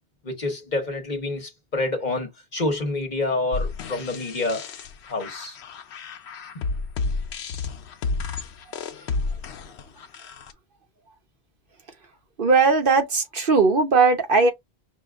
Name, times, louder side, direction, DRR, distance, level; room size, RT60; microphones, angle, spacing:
voice 1, 0.2-4.7 5.1-5.6 6.5-6.6, left 2 dB, 45° left, 1.1 m, -28 dB
sound 1, 3.5-10.5, left 4 dB, 85° left, 1.0 m, -31 dB
voice 2, 12.4-14.5, right 4 dB, 55° right, 1.1 m, -19 dB
5.6 x 2.3 x 3.5 m
omnidirectional pair, 1.1 m